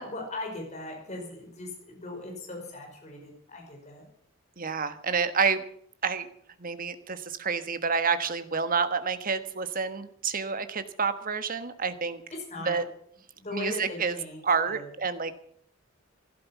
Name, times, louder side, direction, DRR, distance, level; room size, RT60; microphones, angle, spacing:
voice 1, 0.0-4.0 12.5-12.8 13.4-14.9, left 2 dB, 35° left, 0 dB, 5.3 m, -39 dB
voice 2, 4.6-5.6 6.0-6.3 6.6-12.2 12.6-12.8 13.5-14.2 14.4-15.3, right 5 dB, 45° right, 11 dB, 1.4 m, -28 dB
15.5 x 12.5 x 7.2 m, 0.63 s
head